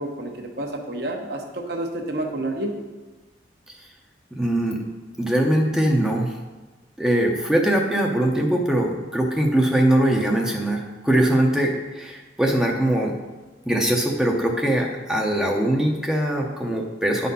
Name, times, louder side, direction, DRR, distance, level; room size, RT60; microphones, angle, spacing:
voice 1, 0.0-2.7, right 1 dB, 60° right, 2 dB, 1.1 m, -29 dB
voice 2, 4.3-4.8 5.2-6.3 7.0-13.1 13.7-17.3, right 1 dB, 5° right, 0 dB, 0.7 m, -21 dB
10.5 x 4.2 x 5.4 m, 1.2 s
head